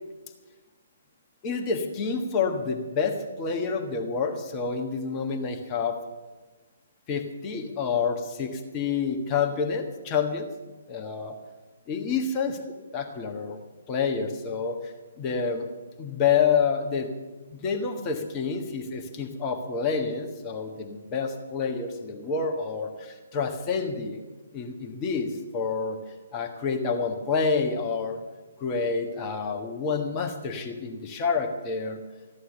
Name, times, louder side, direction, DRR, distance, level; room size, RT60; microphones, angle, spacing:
voice 1, 1.4-6.0 7.1-10.5 10.9-11.4 11.9-12.5 12.9-13.6 13.9-15.7 16.0-17.1 17.5-24.2 24.5-26.0 26.3-28.2 28.6-32.0, left 5 dB, 20° left, 4 dB, 1.5 m, -28 dB
15.0 x 11.5 x 6.9 m, 1.3 s
figure-of-eight pair, 130°, 0 cm